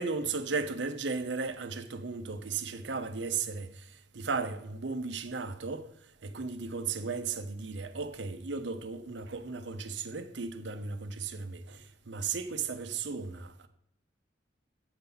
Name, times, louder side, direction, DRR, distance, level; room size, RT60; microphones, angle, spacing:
voice 1, 0.0-13.7, right 4 dB, 70° right, 0.7 m, -35 dB
7.9 x 4.0 x 6.8 m
head